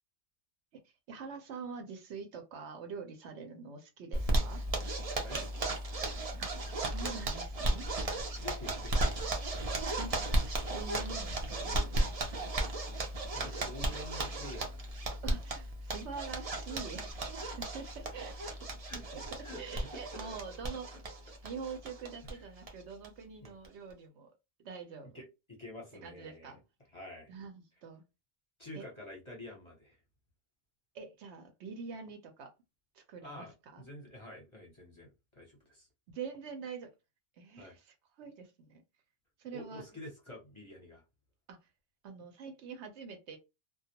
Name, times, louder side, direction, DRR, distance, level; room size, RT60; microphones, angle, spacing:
voice 1, 0.7-4.6 6.4-7.9 10.0-10.2 10.7-12.5 15.2-18.4 19.1-19.2 19.6-20.9 21.4-24.3 24.6-25.2 26.0-26.6 27.3-28.0 28.7-28.8 30.9-32.5 32.9-33.8 36.1-36.9 37.4-38.8 39.4-39.8 41.5-41.6 42.0-43.4, right 5 dB, 75° right, 0.9 m, -45 dB
Zipper (clothing), 4.1-22.3 22.6-22.7 23.0-23.1 23.4-23.9, right 1 dB, 45° right, 0.5 m, -35 dB
voice 2, 5.2-5.8 8.3-9.2 13.3-15.1 18.9-19.2 19.4-20.4 22.2-22.4 23.4-23.5 25.1-26.6 26.9-27.3 28.6-30.0 33.2-33.5 33.8-35.9 37.6-37.7 39.5-41.0, left 1 dB, 30° left, 0.7 m, -48 dB
2.3 x 2.1 x 2.8 m
omnidirectional pair, 1.2 m